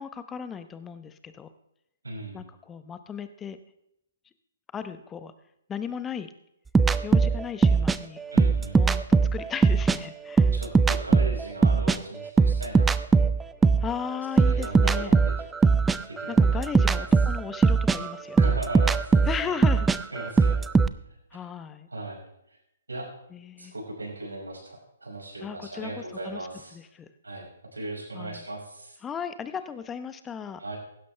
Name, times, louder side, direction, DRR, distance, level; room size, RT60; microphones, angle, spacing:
voice 1, 0.0-1.5 2.3-3.6 4.7-5.3 5.7-6.3 7.0-8.2 8.7-9.0 9.3-10.5 13.8-15.1 16.3-18.5 19.3-19.9 21.3-21.9 23.3-23.7 25.4-25.9 26.2-26.4 26.7-27.1 28.1-28.4 29.0-30.6, left 7 dB, 15° left, 11 dB, 0.9 m, -36 dB
voice 2, 2.0-2.4 8.3-8.9 10.5-12.9 14.4-15.3 16.1-17.1 18.4-19.6 20.1-20.7 21.9-22.2 22.5-22.6 22.9-23.1 23.6-26.8 27.2-29.0 30.6-30.8, right 2 dB, 85° right, -2 dB, 5.8 m, -37 dB
sound 1, 6.7-10.0 10.3-13.9 14.4-20.9, right 4 dB, 10° right, 0.4 m, -21 dB
16.0 x 12.0 x 3.4 m, 0.81 s
figure-of-eight pair, 135°, 0 cm